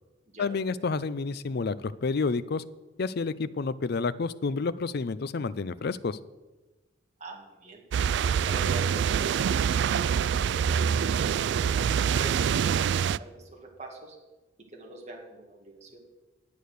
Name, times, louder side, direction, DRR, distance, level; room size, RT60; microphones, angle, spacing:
voice 1, 0.4-2.6 3.0-6.2, left 4 dB, 55° left, 16 dB, 0.5 m, -29 dB
voice 2, 7.2-7.8 8.2-10.7 11.3-12.4 12.8-12.9 13.2-14.2 14.7-16.0, right 2 dB, 35° right, -1 dB, 2.2 m, -43 dB
sound 1, 7.9-13.2, right 7 dB, 65° right, 0.3 m, -25 dB
11.0 x 8.4 x 6.6 m, 1.1 s
head